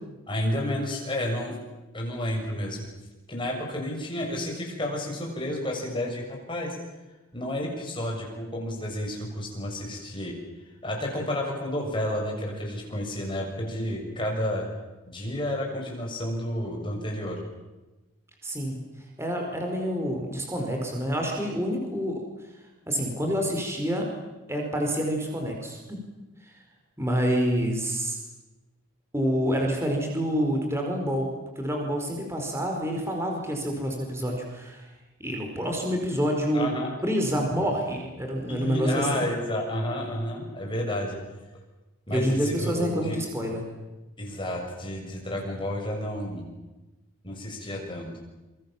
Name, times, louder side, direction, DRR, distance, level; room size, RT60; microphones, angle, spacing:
voice 1, 0.3-1.6 1.9-2.9 3.3-6.8 7.3-10.3 10.8-14.7 15.0-17.4 36.5-36.9 37.6-37.7 38.5-41.2 42.1-43.2 44.2-46.5 47.2-48.1, left 1 dB, 20° left, 0 dB, 6.8 m, -31 dB
voice 2, 18.4-18.7 19.2-22.2 22.9-24.1 24.5-26.0 27.0-28.2 29.1-31.3 31.6-34.8 35.2-36.7 37.0-39.3 42.1-43.6, equal, 10° right, 1 dB, 4.9 m, -27 dB
28.0 x 24.0 x 7.4 m, 1.1 s
head